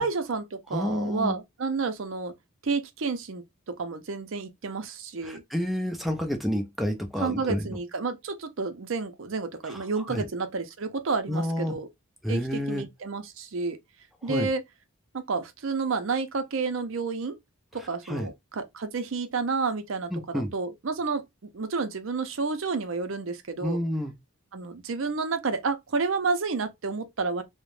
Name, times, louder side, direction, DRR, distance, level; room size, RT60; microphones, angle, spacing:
voice 1, 0.0-2.3 2.6-5.4 7.2-11.9 12.3-13.8 14.2-14.6 15.1-17.4 17.7-21.2 21.5-23.8 24.5-27.4, right 4 dB, 60° right, 0.5 m, -30 dB
voice 2, 0.7-1.4 5.2-7.8 9.6-9.8 10.1-10.3 11.3-11.8 12.2-12.9 14.2-14.5 18.1-18.3 20.1-20.5 23.6-24.1, equal, ahead, 0.5 m, -29 dB
2.3 x 2.1 x 3.1 m
head